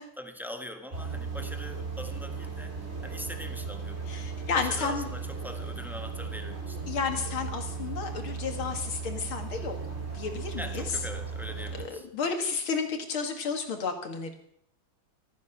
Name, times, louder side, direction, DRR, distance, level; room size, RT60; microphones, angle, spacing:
voice 1, 0.2-2.7 3.0-4.2 4.5-6.8 10.6-12.1, left 1 dB, ahead, 5 dB, 1.1 m, -42 dB
sound 1, 0.9-11.9, right 5 dB, 30° right, 3.3 m, -36 dB
voice 2, 4.1-5.1 6.9-9.7 10.1-10.9 11.7-14.3, left 5 dB, 80° left, 5 dB, 2.8 m, -32 dB
14.5 x 13.5 x 5.9 m, 0.70 s
omnidirectional pair, 2.2 m